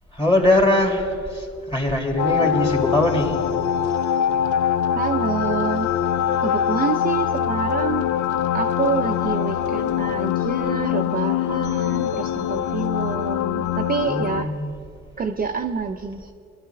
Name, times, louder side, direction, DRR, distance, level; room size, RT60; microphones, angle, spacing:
voice 1, 0.1-3.4 14.1-14.7, left 1 dB, 20° left, 0 dB, 2.5 m, -21 dB
sound 1, 2.2-14.4, left 9 dB, 75° left, 0.5 m, -23 dB
voice 2, 4.9-5.9 6.4-8.1 8.5-14.5 15.2-16.3, right 6 dB, 30° right, 4 dB, 0.5 m, -27 dB
21.0 x 12.0 x 2.3 m, 2.3 s
cardioid pair, 90°, 30 cm